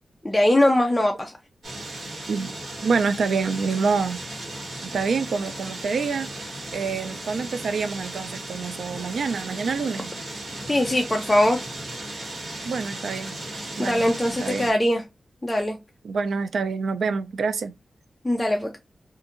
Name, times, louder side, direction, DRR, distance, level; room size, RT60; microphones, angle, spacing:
voice 1, 0.2-1.4 10.7-11.6 13.8-15.0 15.4-15.8 18.2-18.8, left 1 dB, 10° left, 0.4 m, -21 dB
sound 1, 1.6-14.7, right 1 dB, 60° right, 1.4 m, -36 dB
voice 2, 2.8-4.2 4.8-10.1 12.6-13.4 13.8-14.7 16.0-17.7, right 5 dB, 85° right, 0.4 m, -27 dB
2.7 x 2.5 x 2.5 m
wide cardioid pair, 135°, 0 cm